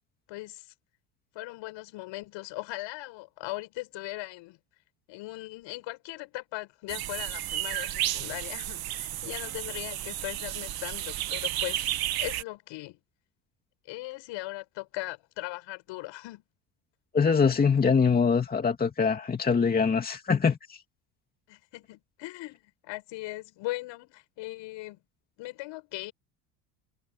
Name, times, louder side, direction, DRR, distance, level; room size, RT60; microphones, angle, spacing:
voice 1, 0.3-0.7 1.3-4.6 5.1-11.9 12.2-13.0 13.9-16.4 21.5-25.0 25.4-26.1, left 19 dB, 65° left, 7.9 m, -39 dB
sound 1, 6.9-12.4, right 14 dB, 50° right, 1.9 m, -32 dB
voice 2, 17.1-20.8, left 5 dB, 20° left, 2.5 m, -23 dB
cardioid pair, 135°, 48 cm